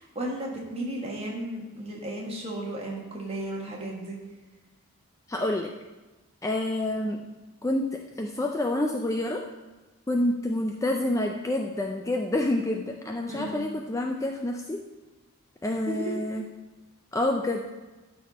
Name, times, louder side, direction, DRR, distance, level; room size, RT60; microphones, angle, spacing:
voice 1, 0.0-4.2 13.3-13.6 15.9-16.1, right 1 dB, 25° right, -2 dB, 1.5 m, -34 dB
voice 2, 5.3-5.7 6.4-7.2 7.6-9.4 10.1-14.8 15.6-16.5 17.1-17.6, left 1 dB, 15° left, 1 dB, 0.3 m, -28 dB
12.0 x 4.2 x 4.1 m, 1.2 s
head